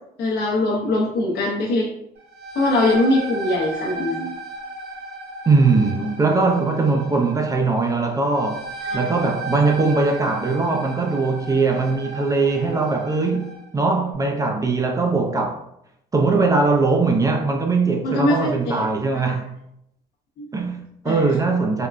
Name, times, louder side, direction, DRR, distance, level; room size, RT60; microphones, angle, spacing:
voice 1, 0.2-1.9 2.6-4.3 8.8-9.1 18.0-18.8 19.1-19.4 20.4-20.5 21.0-21.3, left 2 dB, 75° left, 0.6 m, -22 dB
sound 1, 2.2-13.6, right 2 dB, 70° right, 1.0 m, -34 dB
voice 2, 5.5-8.7 8.9-15.6 16.1-19.5 20.5-21.9, right 3 dB, 20° right, 0.3 m, -20 dB
3.4 x 2.1 x 2.4 m
cardioid pair, 110°, 17 cm